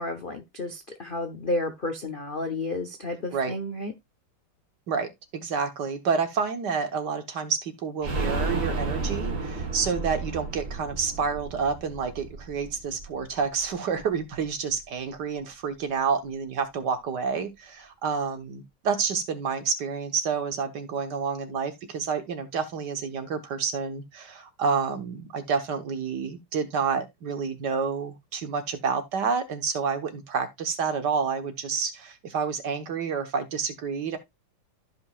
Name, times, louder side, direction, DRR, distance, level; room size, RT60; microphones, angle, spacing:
voice 1, 0.0-3.9, left 2 dB, 50° left, 0.6 m, -31 dB
voice 2, 4.9-34.2, right 5 dB, 55° right, 1.7 m, -29 dB
sound 1, 8.0-13.6 14.0-14.1 14.4-14.5, right 3 dB, 35° right, 2.5 m, -32 dB
14.5 x 5.2 x 2.4 m
omnidirectional pair, 2.4 m